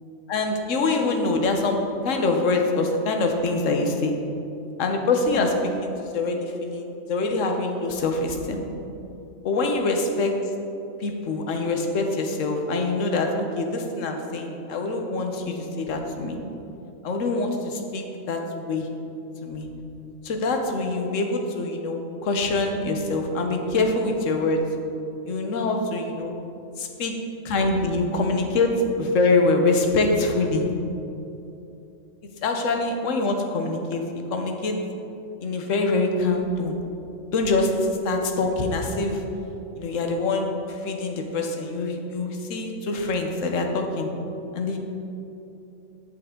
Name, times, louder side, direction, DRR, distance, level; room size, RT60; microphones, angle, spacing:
voice 1, 0.3-1.8 2.0-4.1 4.8-5.5 5.8-8.6 9.4-10.3 11.0-16.4 17.0-18.9 19.4-19.7 20.2-24.6 25.3-26.3 26.8-27.1 27.4-28.7 29.0-30.7 32.4-34.0 34.3-34.8 35.4-36.8 37.3-37.7 38.0-39.2 39.8-44.1 44.5-44.8, left 3 dB, 70° left, 3 dB, 1.2 m, -24 dB
8.1 x 7.6 x 3.6 m, 2.8 s
omnidirectional pair, 1.4 m